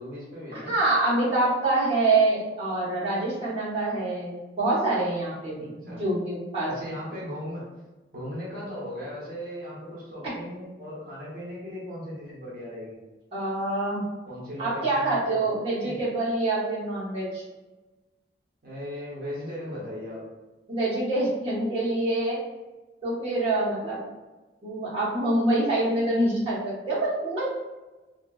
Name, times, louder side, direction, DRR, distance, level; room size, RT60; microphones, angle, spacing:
voice 1, 0.0-0.7 5.5-6.0 6.7-7.7 8.1-13.0 14.2-15.4 15.8-16.0 18.6-20.2, equal, 50° right, -6 dB, 0.8 m, -37 dB
voice 2, 0.5-7.0 13.3-14.0 14.6-17.4 20.7-22.4 23.0-24.0 24.6-27.4, right 2 dB, 30° right, -9 dB, 1.2 m, -26 dB
2.7 x 2.7 x 2.4 m, 1.2 s
head